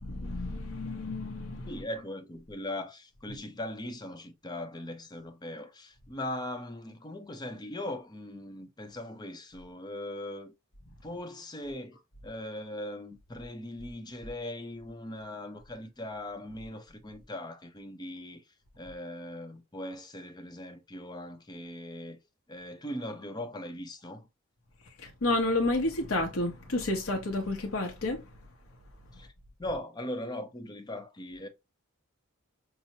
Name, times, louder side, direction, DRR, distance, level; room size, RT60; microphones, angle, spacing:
voice 1, 0.0-1.7 25.0-28.3, left 2 dB, 75° left, 0.8 m, -30 dB
voice 2, 1.6-10.5 11.0-12.0 12.2-22.2 22.5-24.3 29.1-29.3 29.6-31.5, left 1 dB, 20° left, 0.6 m, -40 dB
5.6 x 2.0 x 2.7 m
head